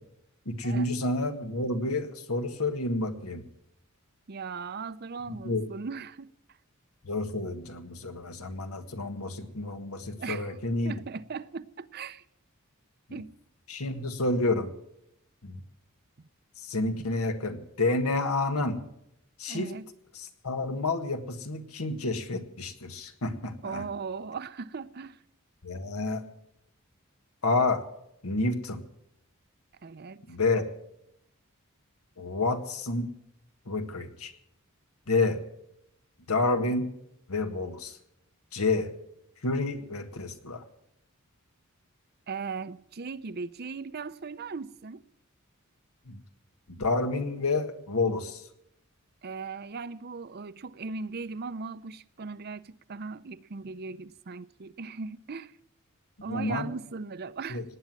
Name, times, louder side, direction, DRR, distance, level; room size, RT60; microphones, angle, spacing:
voice 1, 0.4-3.4 5.3-5.6 7.0-10.9 13.1-13.2 13.7-14.7 15.4-15.6 16.6-18.8 19.4-19.7 20.1-23.8 25.6-26.2 27.4-27.8 28.2-28.8 30.3-30.7 32.2-33.1 33.6-34.3 35.1-35.4 36.3-36.9 37.3-38.0 38.5-38.9 39.4-40.6 46.1-46.2 46.7-48.4 56.3-56.7 57.5-57.6, left 2 dB, 85° left, 1.7 m, -29 dB
voice 2, 4.3-6.3 10.2-10.6 10.8-12.2 13.1-13.3 19.5-19.9 23.6-25.2 29.8-30.2 42.3-45.0 49.2-55.5 56.2-57.6, right 4 dB, 45° right, 0.5 m, -38 dB
18.5 x 9.4 x 7.5 m
head